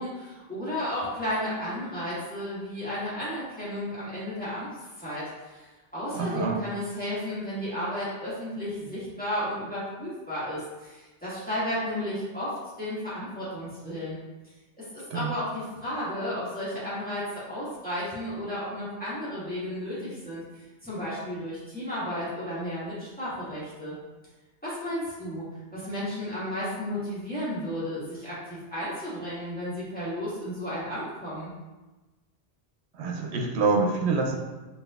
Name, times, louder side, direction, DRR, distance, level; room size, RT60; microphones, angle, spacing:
voice 1, 0.0-4.7 5.0-14.2 14.8-24.0 24.6-31.5, left 1 dB, 10° left, -11 dB, 1.5 m, -33 dB
voice 2, 6.2-6.6 15.1-15.3 33.0-34.4, right 4 dB, 85° right, 1 dB, 0.9 m, -26 dB
5.0 x 2.7 x 2.4 m, 1.2 s
omnidirectional pair, 1.1 m